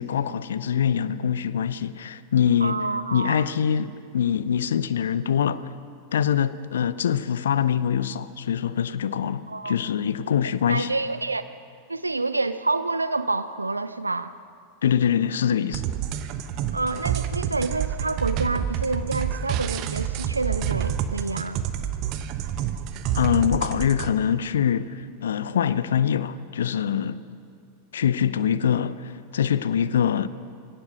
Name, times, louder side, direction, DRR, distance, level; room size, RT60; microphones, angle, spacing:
voice 1, 0.0-2.8 3.1-5.7 6.1-10.9 14.8-15.8 23.1-27.2 27.9-30.3, left 8 dB, 65° left, 0.7 m, -24 dB
voice 2, 2.6-3.5 9.5-9.8 10.7-11.5 11.9-14.3 16.7-21.6, right 3 dB, 80° right, 0.5 m, -28 dB
sound 1, 15.7-24.1, right 9 dB, 40° right, 1.1 m, -28 dB
23.5 x 18.0 x 6.4 m
figure-of-eight pair, 90°, 0 cm